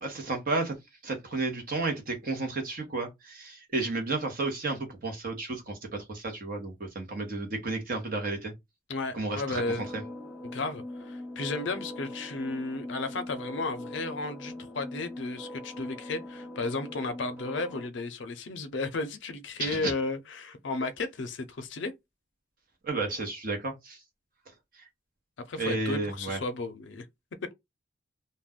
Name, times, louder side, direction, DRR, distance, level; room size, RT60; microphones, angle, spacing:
voice 1, 0.0-0.7 1.0-8.5 9.1-9.6 9.9-10.0 19.6-19.9 22.8-24.0 24.8-24.9 25.6-26.4, right 3 dB, 45° right, 0.8 m, -32 dB
voice 2, 8.9-9.8 10.5-21.9 25.5-27.1, left 3 dB, 65° left, 0.5 m, -34 dB
sound 1, 9.6-17.9, left 1 dB, 5° right, 0.4 m, -42 dB
2.4 x 2.1 x 3.5 m
head